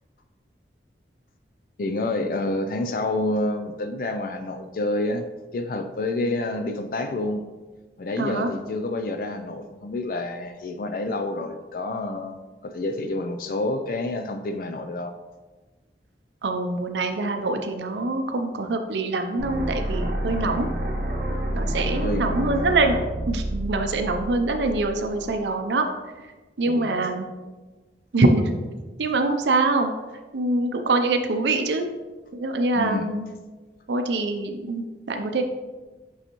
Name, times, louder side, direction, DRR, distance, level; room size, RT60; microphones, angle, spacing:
voice 1, 1.8-5.2 5.5-7.4 8.0-15.2 22.0-22.3 25.3-25.4 26.7-27.0 32.7-33.1, left 2 dB, 50° left, 7 dB, 0.4 m, -28 dB
voice 2, 8.2-8.5 16.4-20.7 21.5-23.0 23.3-25.9 26.6-27.3 28.1-28.5 29.0-29.9 30.3-31.8 32.3-33.3 33.9-35.4, right 2 dB, 80° right, 5 dB, 0.5 m, -24 dB
sound 1, 19.4-25.4, right 1 dB, 50° right, 1.0 m, -29 dB
6.7 x 5.5 x 3.0 m, 1.3 s
head